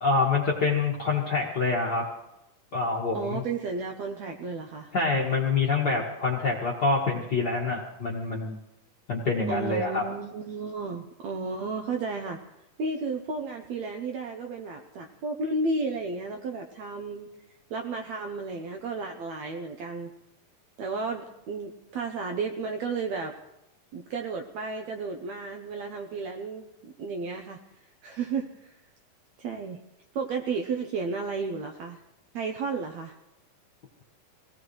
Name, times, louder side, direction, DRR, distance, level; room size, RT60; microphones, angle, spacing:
voice 1, 0.0-2.0 2.7-3.4 4.9-8.6 9.1-10.0, left 4 dB, 45° left, -3 dB, 1.3 m, -26 dB
voice 2, 3.1-4.9 9.5-12.4 12.8-17.3 17.7-20.1 20.8-23.3 23.9-27.6 28.0-28.8 29.4-29.8 30.1-32.0 32.3-33.1, right 4 dB, 75° right, 3 dB, 1.7 m, -33 dB
24.0 x 17.0 x 3.1 m, 0.89 s
omnidirectional pair, 4.0 m